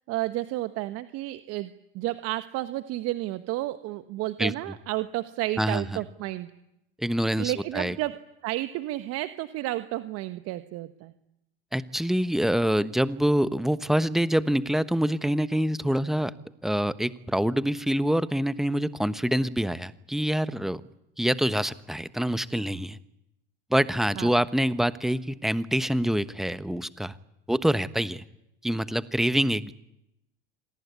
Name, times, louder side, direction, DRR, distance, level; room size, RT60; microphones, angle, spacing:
voice 1, 0.1-6.5 7.4-8.2 8.4-11.1 24.1-24.3, right 16 dB, 55° right, 10 dB, 1.4 m, -31 dB
voice 2, 7.0-7.9 11.7-16.3 16.6-20.8 21.2-23.0 23.7-27.1 27.5-28.2 28.6-29.7, equal, ahead, 14 dB, 1.2 m, -25 dB
27.0 x 19.0 x 9.7 m, 0.86 s
hypercardioid pair, 90°, 29 cm